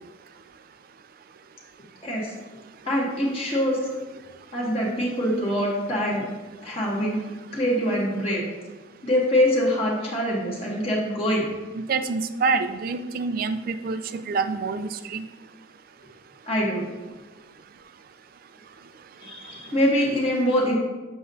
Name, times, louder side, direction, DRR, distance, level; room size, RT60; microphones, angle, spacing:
voice 1, 2.0-2.3 2.8-3.8 4.5-6.2 6.6-7.2 7.5-8.4 9.0-11.5 16.5-16.8 19.2-20.8, equal, 30° left, -4 dB, 1.0 m, -24 dB
voice 2, 11.7-15.2, right 4 dB, 50° right, 11 dB, 0.4 m, -27 dB
6.9 x 6.2 x 2.7 m, 1.2 s
head